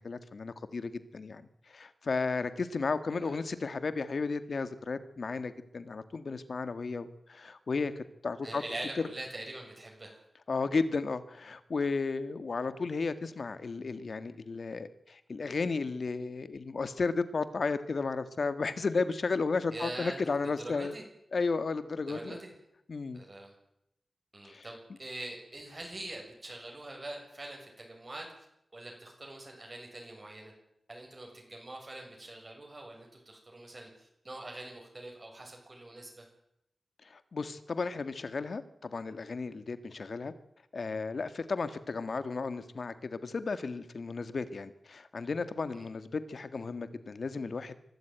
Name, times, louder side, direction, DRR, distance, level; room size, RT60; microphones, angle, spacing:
voice 1, 0.0-8.6 10.5-21.0 21.3-22.4 22.9-23.2 24.4-24.6 37.0-40.3 40.7-47.7, left 4 dB, 65° left, 12 dB, 1.7 m, -34 dB
voice 2, 8.4-10.2 19.7-21.0 22.1-22.5 23.1-23.5 24.3-28.3 28.7-30.5 30.9-36.3 45.7-45.9, right 2 dB, 40° right, 0 dB, 7.1 m, -44 dB
23.5 x 13.0 x 9.2 m, 0.79 s
cardioid pair, 65°, 0 cm